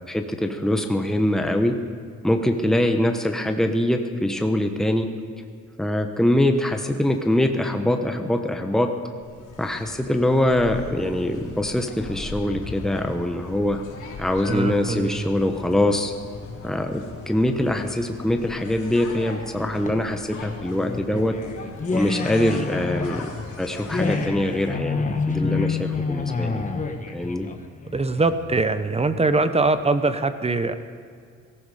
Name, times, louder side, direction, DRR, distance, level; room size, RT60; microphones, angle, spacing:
voice 1, 0.1-1.8 2.2-5.1 5.8-8.9 9.6-13.8 14.2-16.1 16.6-21.3 21.9-23.3 23.6-25.0 25.3-26.6 27.1-27.5, left 1 dB, ahead, 5 dB, 1.1 m, -23 dB
sound 1, 9.2-24.3, left 3 dB, 75° left, 3.9 m, -39 dB
voice 2, 14.5-15.3 27.9-30.7, right 3 dB, 20° right, 11 dB, 0.9 m, -22 dB
sound 2, 19.6-28.6, left 4 dB, 25° left, 1.5 m, -28 dB
17.5 x 15.0 x 5.0 m, 2.2 s
cardioid pair, 90°, 30 cm